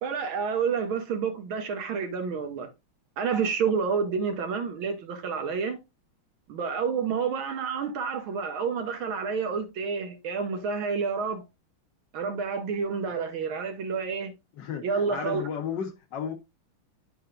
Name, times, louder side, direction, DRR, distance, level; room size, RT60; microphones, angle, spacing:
voice 1, 0.0-2.7 3.2-5.8 6.5-11.4 12.1-14.3 14.8-15.5, right 5 dB, 75° right, 1.8 m, -29 dB
voice 2, 14.6-16.3, left 7 dB, 65° left, 1.4 m, -34 dB
10.0 x 4.6 x 2.4 m
omnidirectional pair, 2.3 m